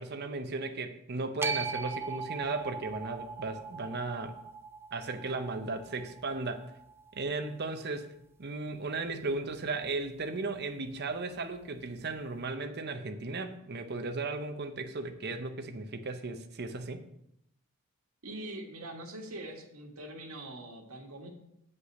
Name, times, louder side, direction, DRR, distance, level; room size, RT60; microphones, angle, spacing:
voice 1, 0.0-4.4 4.9-6.7 7.1-8.1 8.4-17.1, right 3 dB, 50° right, 0.7 m, -36 dB
sound 1, 1.4-7.6, right 5 dB, 10° right, 0.3 m, -40 dB
voice 2, 18.2-21.3, right 1 dB, 90° right, 1.7 m, -43 dB
8.1 x 5.5 x 7.0 m
head